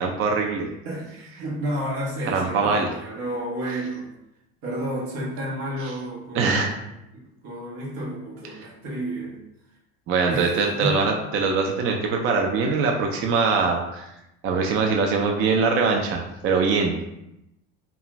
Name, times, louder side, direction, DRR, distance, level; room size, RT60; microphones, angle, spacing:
voice 1, 0.0-0.7 2.3-2.9 6.3-6.7 10.1-14.1 14.4-17.0, right 4 dB, 40° right, 2 dB, 0.4 m, -22 dB
voice 2, 0.8-4.1 4.6-6.8 7.1-9.4 10.3-10.5 10.8-11.1, right 1 dB, 85° right, -4 dB, 1.0 m, -31 dB
2.4 x 2.4 x 2.9 m, 0.87 s
supercardioid pair, 90°, 31 cm